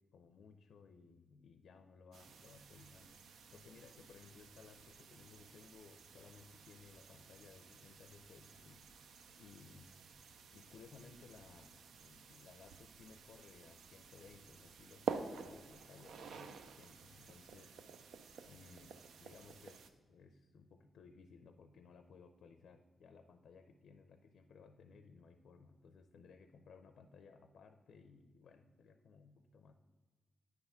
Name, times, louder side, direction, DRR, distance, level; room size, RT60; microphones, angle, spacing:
voice 1, 0.1-10.0 10.5-11.7 12.0-18.0 18.5-29.7, left 5 dB, 80° left, 7 dB, 0.5 m, -60 dB
sound 1, 2.1-19.9, right 6 dB, 90° right, 0.5 m, -50 dB
9.4 x 3.5 x 5.6 m, 1.4 s
cardioid pair, 95°, 0 cm